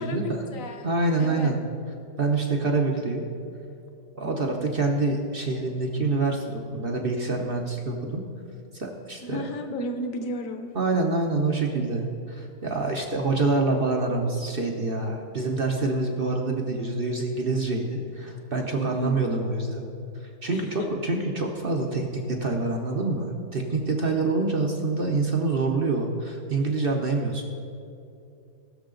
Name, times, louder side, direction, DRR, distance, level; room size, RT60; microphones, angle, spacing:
voice 1, 0.0-0.9 1.2-1.5 9.2-10.7 18.7-19.5 20.5-20.9, equal, 50° left, 6 dB, 1.2 m, -33 dB
voice 2, 0.8-1.6 2.2-3.2 4.1-8.2 8.7-9.4 10.7-19.8 20.4-27.4, right 3 dB, 50° right, 2 dB, 0.7 m, -26 dB
19.0 x 6.6 x 3.8 m, 2.6 s
omnidirectional pair, 2.1 m